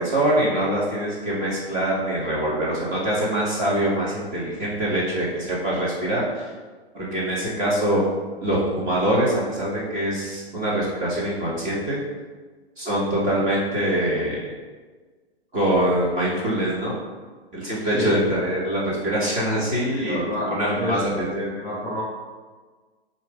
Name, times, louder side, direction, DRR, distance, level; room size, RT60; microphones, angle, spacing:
voice 1, 0.0-6.5 6.9-8.0 8.4-12.0 12.8-14.4 15.5-17.0 17.5-21.5, right 1 dB, 25° right, -6 dB, 2.0 m, -24 dB
voice 2, 17.8-18.2 19.9-22.0, left 1 dB, 10° left, -6 dB, 1.6 m, -29 dB
7.4 x 2.9 x 5.2 m, 1.4 s
hypercardioid pair, 125°, 32 cm